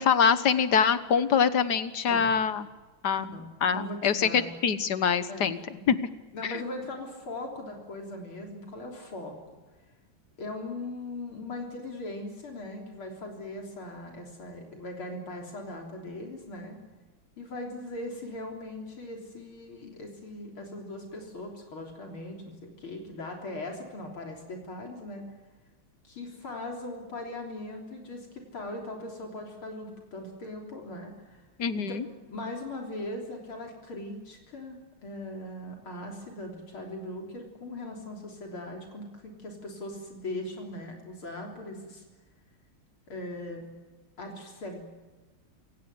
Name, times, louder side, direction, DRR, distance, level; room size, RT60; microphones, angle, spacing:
voice 1, 0.0-2.7 3.0-3.3 3.6-5.6 5.9-6.0 31.6-32.0, left 7 dB, 55° left, 13 dB, 1.6 m, -24 dB
voice 2, 2.1-2.4 3.3-4.5 5.3-5.6 6.3-9.4 10.4-16.8 17.4-25.2 26.0-31.4 31.7-42.0 43.1-43.6 44.2-44.8, left 1 dB, 75° left, 1 dB, 4.3 m, -39 dB
27.5 x 17.5 x 9.6 m, 1.3 s
omnidirectional pair, 2.3 m